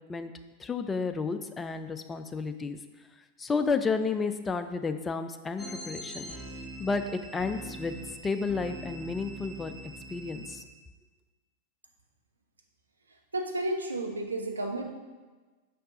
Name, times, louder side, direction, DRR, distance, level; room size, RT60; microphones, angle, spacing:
voice 1, 0.6-2.8 3.4-6.3 6.8-7.9 8.2-9.7 10.1-10.6, left 4 dB, 15° left, 9 dB, 0.4 m, -31 dB
sound 1, 5.6-10.6, right 1 dB, ahead, 0.9 m, -43 dB
voice 2, 13.3-14.8, right 1 dB, 75° right, 3 dB, 0.7 m, -32 dB
5.8 x 4.5 x 3.7 m, 1.3 s
figure-of-eight pair, 90°, 0 cm